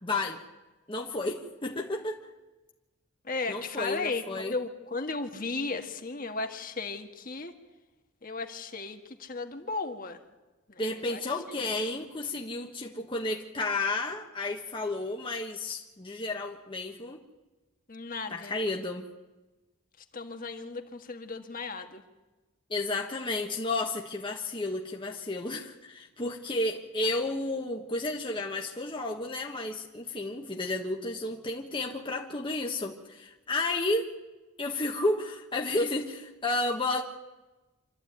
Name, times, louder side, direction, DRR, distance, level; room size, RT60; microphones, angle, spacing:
voice 1, 0.0-0.4 0.9-2.2 3.5-4.5 10.8-17.2 18.3-19.1 22.7-34.1 34.6-37.0, left 2 dB, 25° left, 1 dB, 1.3 m, -32 dB
voice 2, 3.2-7.5 8.2-10.2 10.7-11.2 17.9-18.6 20.1-22.0, left 3 dB, 40° left, 5 dB, 1.7 m, -35 dB
26.0 x 13.5 x 9.4 m, 1.1 s
head